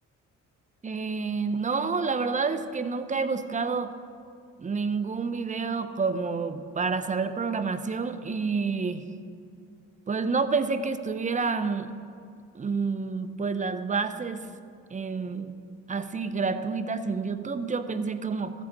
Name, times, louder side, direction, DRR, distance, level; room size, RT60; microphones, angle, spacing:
voice 1, 0.8-3.9 4.6-9.0 10.1-11.9 12.5-14.4 14.9-15.5 15.9-18.5, right 4 dB, 25° right, 10 dB, 0.6 m, -29 dB
14.5 x 8.3 x 3.8 m, 2.3 s
cardioid pair, 90°, 30 cm